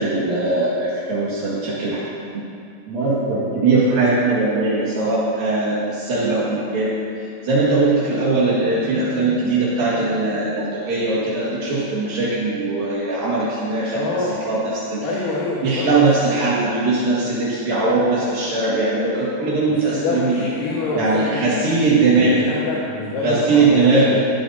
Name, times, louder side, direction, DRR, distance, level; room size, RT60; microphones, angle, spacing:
voice 1, 0.0-2.4 2.9-6.9 7.4-14.2 14.5-15.1 15.6-20.4 20.9-22.4 23.2-24.2, right 3 dB, 70° right, -8 dB, 3.7 m, -20 dB
voice 2, 13.9-14.4 15.0-15.9 19.7-24.2, left 3 dB, 65° left, -7 dB, 3.1 m, -26 dB
18.5 x 15.0 x 2.8 m, 2.5 s
omnidirectional pair, 4.3 m